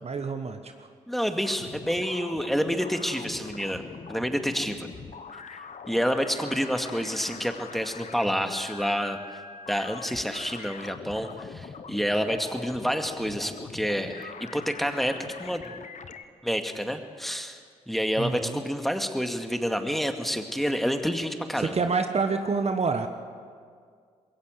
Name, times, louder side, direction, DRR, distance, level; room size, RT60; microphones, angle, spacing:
voice 1, 0.0-0.9 18.2-18.6 21.6-23.1, right 4 dB, 40° right, 7 dB, 1.3 m, -27 dB
voice 2, 1.1-3.8 4.1-4.9 5.5-9.4 9.7-15.7 16.4-17.6 17.9-21.8, equal, ahead, 6 dB, 2.2 m, -28 dB
sound 1, 1.4-16.3, left 5 dB, 50° left, 1.3 m, -43 dB
21.5 x 17.0 x 8.2 m, 2.1 s
hypercardioid pair, 40°, 16 cm